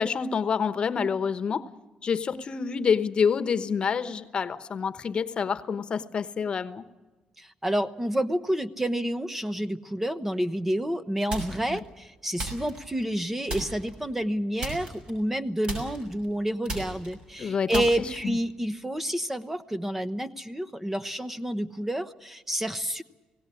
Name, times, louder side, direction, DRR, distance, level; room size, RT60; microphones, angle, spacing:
voice 1, 0.0-1.6 2.0-6.8 11.7-11.8 17.4-17.8 18.2-18.3, left 6 dB, 45° left, 13 dB, 1.0 m, -27 dB
voice 2, 7.4-23.0, right 1 dB, 10° right, 13 dB, 0.8 m, -29 dB
sound 1, 11.3-11.8 12.4-13.2 13.5-14.0 14.6-15.4 15.6-18.4, right 2 dB, 55° right, 6.4 m, -36 dB
18.5 x 17.5 x 9.9 m, 1.2 s
cardioid pair, 105°, 2 cm